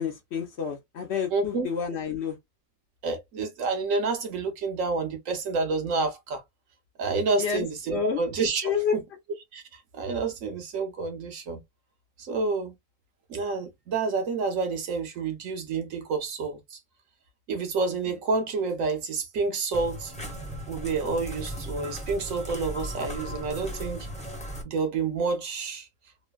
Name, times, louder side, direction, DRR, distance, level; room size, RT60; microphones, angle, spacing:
voice 1, 0.0-2.4 7.4-7.7 7.9-8.2 8.6-8.9, left 7 dB, 60° left, 0.8 m, -29 dB
voice 2, 1.3-1.7 3.0-6.4 7.0-9.0 9.5-9.6 9.9-11.6 12.2-12.7 13.3-16.8 17.5-20.1 20.7-24.1 24.6-25.9, right 4 dB, 70° right, 1.1 m, -29 dB
sound 1, 19.7-24.6, equal, 5° left, 0.7 m, -37 dB
3.1 x 2.1 x 2.3 m
omnidirectional pair, 1.4 m